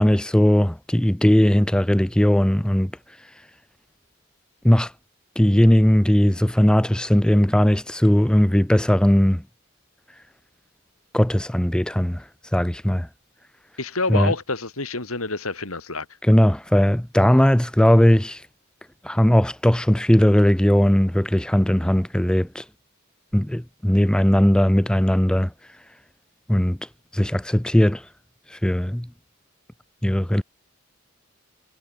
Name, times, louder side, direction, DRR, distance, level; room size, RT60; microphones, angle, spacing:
voice 1, 0.0-2.9 4.6-4.9 5.4-9.4 11.1-12.2 12.5-13.1 14.1-14.3 16.2-18.4 19.0-22.6 23.3-25.5 26.5-26.8 27.1-28.0 28.5-29.1 30.0-30.4, equal, 5° left, 0.5 m, -18 dB
voice 2, 13.8-16.1, left 3 dB, 85° left, 5.6 m, -27 dB
head